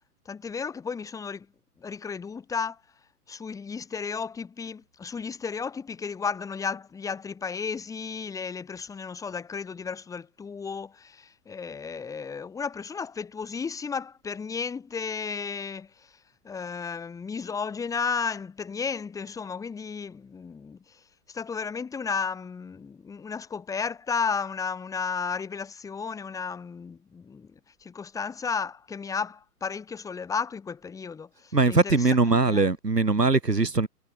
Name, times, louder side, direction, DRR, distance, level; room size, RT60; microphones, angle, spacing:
voice 1, 0.2-1.5 1.8-2.8 3.3-16.2 16.4-32.7, left 5 dB, 5° left, 1.7 m, -33 dB
voice 2, 31.5-33.9, right 3 dB, 85° right, 3.8 m, -21 dB
figure-of-eight pair, 125°, 47 cm